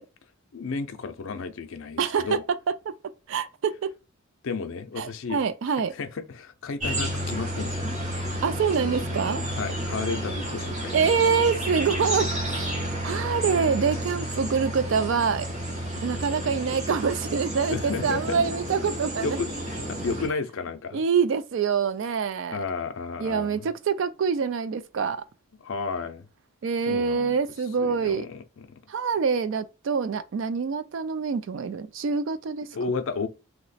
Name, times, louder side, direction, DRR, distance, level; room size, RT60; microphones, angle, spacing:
voice 1, 0.5-2.4 4.4-5.4 5.9-7.9 9.6-11.1 17.7-18.4 19.2-21.0 22.5-23.7 25.6-26.3 26.9-27.4 27.8-28.7 32.7-33.3, left 4 dB, 65° left, 0.4 m, -32 dB
voice 2, 2.0-2.4 3.3-3.9 5.0-5.9 8.4-9.5 10.9-12.7 13.0-15.5 16.0-19.4 20.9-22.6 23.2-25.2 26.6-28.3 28.9-32.7, right 6 dB, 60° right, 0.3 m, -25 dB
sound 1, 6.8-20.3, right 1 dB, 30° right, 0.7 m, -31 dB
3.0 x 2.1 x 4.0 m
head